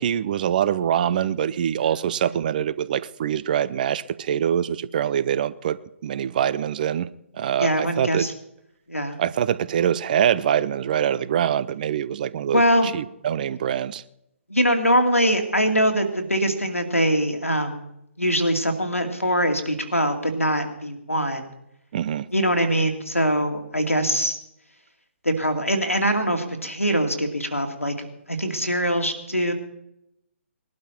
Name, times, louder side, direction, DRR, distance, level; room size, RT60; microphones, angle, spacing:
voice 1, 0.0-7.1 7.3-8.3 9.2-14.0 21.9-22.3, right 9 dB, 40° right, 0.7 m, -24 dB
voice 2, 7.6-8.3 8.9-9.2 12.5-12.9 14.5-17.8 18.2-21.5 22.3-24.4 25.2-29.5, equal, 85° left, 2.5 m, -23 dB
20.5 x 12.0 x 4.5 m
figure-of-eight pair, 130°, 7 cm